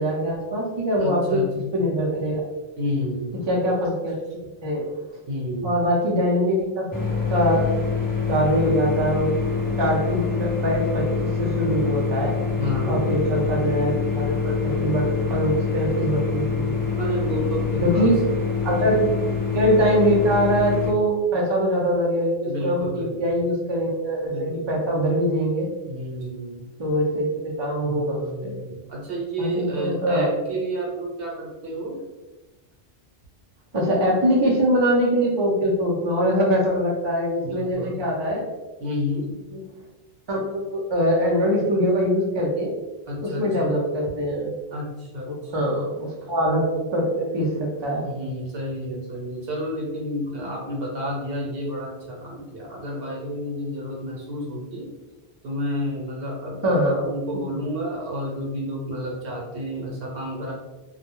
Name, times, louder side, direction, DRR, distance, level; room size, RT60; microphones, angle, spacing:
voice 1, 0.0-1.4 1.7-2.4 3.5-4.8 5.6-7.7 8.3-9.3 9.8-12.3 12.9-16.8 17.8-18.1 18.6-19.0 19.5-25.7 26.8-28.5 29.4-30.3 33.7-38.4 39.5-39.6 40.3-42.7 43.2-44.5 45.5-46.7 46.9-48.1 56.6-57.0 57.3-57.4, equal, 35° right, -3 dB, 0.4 m, -23 dB
voice 2, 1.0-1.7 2.8-3.4 5.3-5.9 12.6-13.2 17.0-18.2 18.8-19.1 22.5-23.4 24.3-24.9 25.9-26.7 27.8-32.0 37.4-38.0 38.8-39.3 43.1-43.7 44.7-45.9 48.0-54.9 55.4-60.5, equal, 65° right, -1 dB, 1.0 m, -30 dB
sound 1, 6.9-20.9, left 5 dB, 30° left, 0.4 m, -25 dB
2.3 x 2.1 x 3.0 m, 1.1 s
omnidirectional pair, 1.1 m